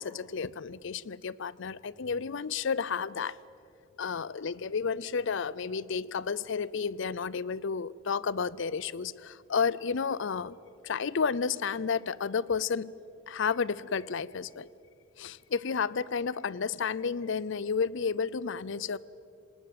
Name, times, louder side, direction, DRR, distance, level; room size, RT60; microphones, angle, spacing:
voice 1, 0.0-3.4 4.0-10.6 10.8-12.9 13.3-14.7 15.2-19.0, left 5 dB, 65° left, 21 dB, 0.6 m, -31 dB
26.5 x 19.5 x 7.6 m, 2.6 s
head